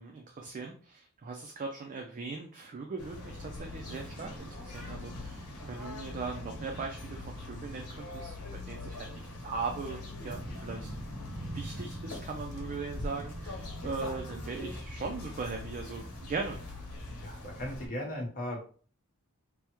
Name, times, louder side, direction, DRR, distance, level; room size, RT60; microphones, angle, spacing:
voice 1, 0.0-8.3 8.7-11.0 11.3-16.6, right 4 dB, 35° right, 2 dB, 0.4 m, -39 dB
sound 1, 3.0-17.9, left 1 dB, 80° left, 0.9 m, -41 dB
voice 2, 17.2-18.6, left 1 dB, 40° left, -1 dB, 1.0 m, -37 dB
3.4 x 2.1 x 3.0 m, 0.42 s
head